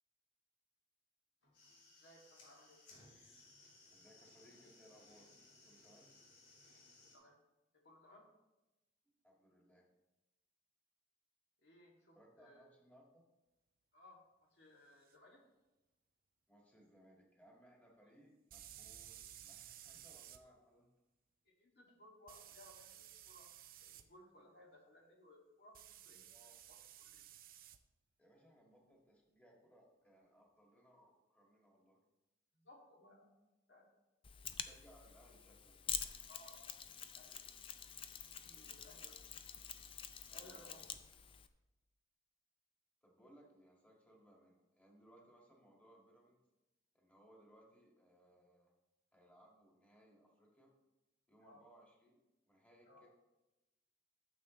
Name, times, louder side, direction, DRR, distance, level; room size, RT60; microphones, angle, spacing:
sound 1, 1.4-7.2, left 2 dB, 85° left, 3.4 m, -63 dB
voice 1, 2.0-2.8 7.1-7.3 7.8-8.3 11.6-12.6 13.9-15.4 20.4-20.6 21.5-23.5 23.8-26.2 26.7-27.3 32.5-33.3 33.7-33.9 36.3-36.8 37.1-37.5 38.3-39.3 40.3-40.8 51.4-51.6 52.9-53.0, left 1 dB, 60° left, -1 dB, 2.2 m, -62 dB
voice 2, 3.9-5.3 5.7-6.1 9.2-9.9 12.1-13.2 16.5-20.9 26.2-26.6 28.2-32.0 34.6-35.9 40.3-40.8 43.0-46.4 46.9-48.7 49.1-50.7 51.3-53.1, equal, 10° left, -2 dB, 1.9 m, -66 dB
sound 2, 15.1-15.2 18.5-20.4 22.3-24.0 25.7-27.8, right 11 dB, 50° right, 0.5 m, -56 dB
Mechanisms, 34.2-41.5, left 8 dB, 30° left, 0.4 m, -47 dB
12.5 x 7.5 x 3.1 m, 1.0 s
head